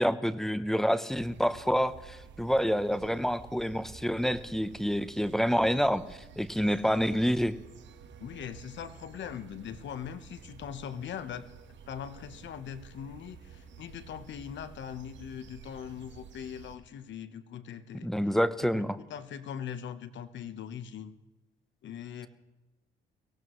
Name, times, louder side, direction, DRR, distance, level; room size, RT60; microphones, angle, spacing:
voice 1, 0.0-6.0 6.4-7.5 18.0-19.0, equal, ahead, 13 dB, 0.8 m, -27 dB
sound 1, 1.1-16.8, right 6 dB, 70° right, 1.5 m, -51 dB
voice 2, 8.2-11.5 11.9-18.1 18.6-21.1 21.8-22.3, left 8 dB, 65° left, 11 dB, 1.1 m, -41 dB
23.0 x 18.0 x 3.2 m, 1.1 s
cardioid pair, 90°, 20 cm